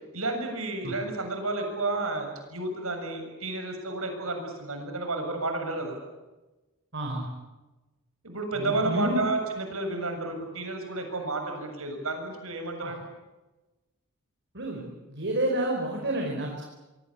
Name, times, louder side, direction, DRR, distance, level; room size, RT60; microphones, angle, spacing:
voice 1, 0.1-6.0 8.2-13.0, right 2 dB, 70° right, 5 dB, 7.1 m, -31 dB
voice 2, 6.9-7.3 8.5-9.2 12.8-12.9 14.5-16.6, right 1 dB, 55° right, 0 dB, 5.1 m, -30 dB
25.5 x 24.0 x 8.6 m, 1.1 s
head